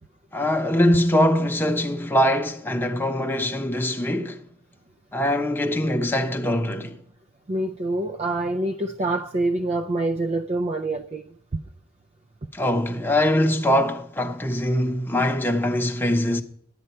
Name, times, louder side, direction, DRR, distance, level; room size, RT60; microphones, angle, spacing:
voice 1, 0.3-4.4 5.1-7.0 12.5-16.4, left 1 dB, 10° left, 0.8 m, -22 dB
voice 2, 7.5-11.2, right 2 dB, 30° right, 0.4 m, -26 dB
11.5 x 8.7 x 4.4 m
head